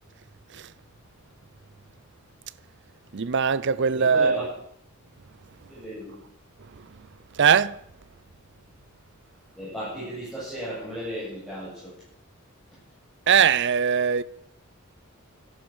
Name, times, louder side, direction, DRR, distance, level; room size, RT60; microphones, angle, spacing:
voice 1, 3.1-4.4 7.4-7.8 13.3-14.2, right 6 dB, 55° right, 0.6 m, -20 dB
voice 2, 3.9-4.5 5.7-6.2 9.6-12.0, equal, ahead, 7.5 m, -35 dB
13.5 x 11.5 x 6.4 m
head